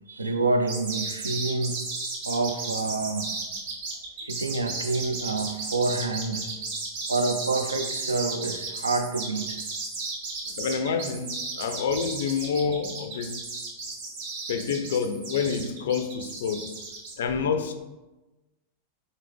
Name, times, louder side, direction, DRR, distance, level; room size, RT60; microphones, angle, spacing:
voice 1, 0.1-1.8 2.2-3.3 4.2-6.5 7.1-9.6, right 3 dB, 75° right, 0.3 m, -27 dB
sound 1, 0.7-17.1, right 3 dB, 55° right, 1.0 m, -34 dB
voice 2, 10.6-13.4 14.5-16.7 17.2-17.7, left 6 dB, 60° left, 0.3 m, -28 dB
3.7 x 3.2 x 3.2 m
figure-of-eight pair, 90°, 0 cm